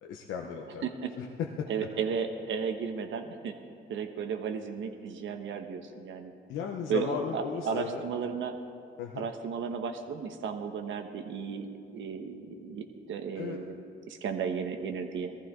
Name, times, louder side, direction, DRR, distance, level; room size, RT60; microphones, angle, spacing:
voice 1, 0.0-0.8 1.2-1.7 6.5-8.0 9.0-9.3 13.4-13.6, left 6 dB, 85° left, 1 dB, 0.9 m, -35 dB
voice 2, 1.7-3.5 3.9-6.3 6.9-8.6 9.2-13.8 14.1-15.3, right 6 dB, 75° right, 6 dB, 1.2 m, -34 dB
19.0 x 14.5 x 3.8 m, 2.4 s
cardioid pair, 90°, 20 cm